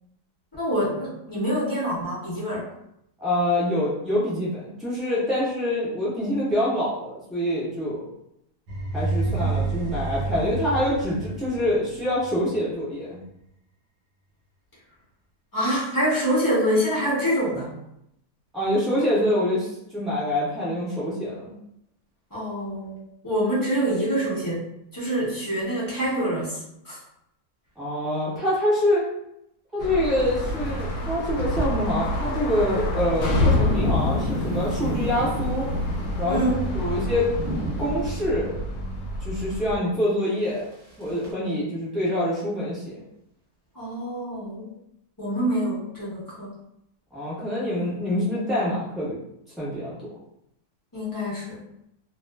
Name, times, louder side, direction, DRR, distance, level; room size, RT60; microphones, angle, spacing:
voice 1, 0.6-2.7 9.2-9.5 15.5-17.7 22.3-24.6 24.9-27.0 36.2-36.6 43.7-44.7 45.2-46.5 50.9-51.6, equal, 35° left, -9 dB, 0.3 m, -26 dB
voice 2, 3.2-8.0 8.9-13.2 18.5-21.5 27.8-29.1 29.7-35.7 36.2-37.3 37.8-38.6 39.2-40.6 41.0-43.0 47.1-49.2 49.6-50.0, left 1 dB, ahead, -9 dB, 0.8 m, -25 dB
sound 1, 8.7-12.6, right 3 dB, 75° right, 1.0 m, -29 dB
sound 2, 29.8-39.8, left 1 dB, 90° left, 1.2 m, -27 dB
sound 3, 30.0-38.0 40.4-41.3, equal, 30° right, 0.7 m, -34 dB
2.4 x 2.3 x 2.2 m, 0.81 s
omnidirectional pair, 1.7 m